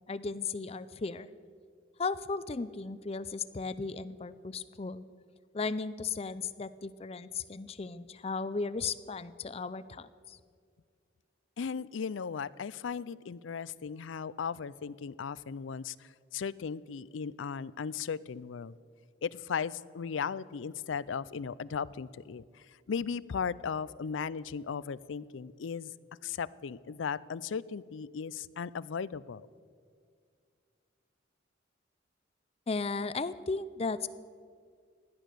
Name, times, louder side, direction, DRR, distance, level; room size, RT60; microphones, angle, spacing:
voice 1, 0.1-1.3 2.0-5.0 5.5-10.4 32.7-34.1, left 4 dB, 30° left, 15 dB, 0.4 m, -35 dB
voice 2, 11.6-18.7 19.2-25.9 26.2-29.5, left 6 dB, 85° left, 20 dB, 0.4 m, -37 dB
16.5 x 11.0 x 6.7 m, 2.1 s
head